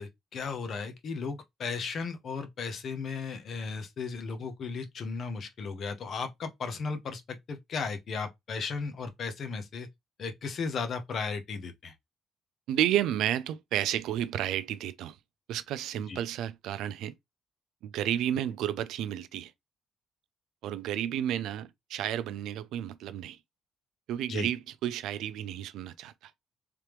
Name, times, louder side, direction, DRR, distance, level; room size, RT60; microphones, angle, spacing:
voice 1, 0.0-9.9 10.2-11.9 16.1-16.2 24.3-24.5, left 5 dB, 45° left, 0.8 m, -35 dB
voice 2, 12.7-15.2 15.5-17.1 17.8-19.5 20.6-23.4 24.1-26.3, right 11 dB, 90° right, 0.4 m, -31 dB
3.4 x 3.4 x 3.0 m
cardioid pair, 165°, 0 cm